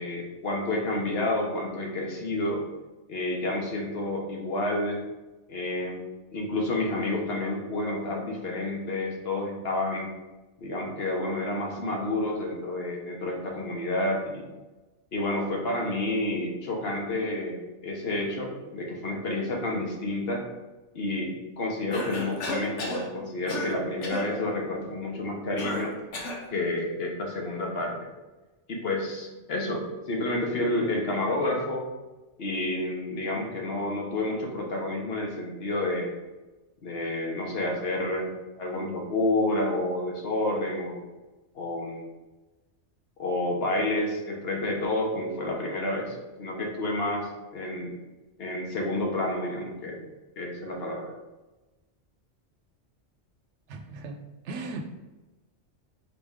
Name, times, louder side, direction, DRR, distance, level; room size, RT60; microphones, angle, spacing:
voice 1, 0.0-2.6 3.1-5.1 5.5-6.0 6.3-10.1 10.6-14.4 15.1-20.4 20.9-25.9 26.5-28.0 28.7-31.9 32.4-36.1 36.8-38.3 38.6-41.0 41.5-42.1 43.2-47.9 48.4-50.0 50.4-51.1, left 1 dB, 60° left, 0 dB, 1.0 m, -29 dB
Cough, 21.9-23.1 23.5-23.8 24.0-24.3 25.6-26.5, left 2 dB, 80° left, 1.1 m, -33 dB
voice 2, 53.7-54.2 54.5-54.8, right 3 dB, 75° right, 5 dB, 0.9 m, -36 dB
4.3 x 3.4 x 3.5 m, 1.1 s
omnidirectional pair, 1.2 m